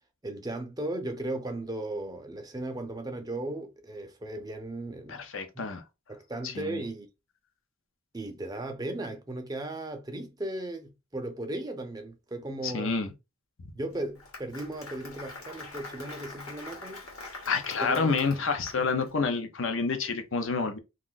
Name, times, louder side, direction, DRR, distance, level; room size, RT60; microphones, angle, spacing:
voice 1, 0.2-5.2 6.1-7.1 8.1-12.9 13.8-17.0 17.8-18.2 18.8-18.9, right 1 dB, 20° right, 0.5 m, -36 dB
voice 2, 5.1-5.8 6.4-6.8 12.6-13.1 17.5-20.8, left 4 dB, 65° left, 0.6 m, -28 dB
Applause, 13.9-19.1, left 3 dB, 80° left, 1.1 m, -44 dB
2.5 x 2.4 x 3.8 m
head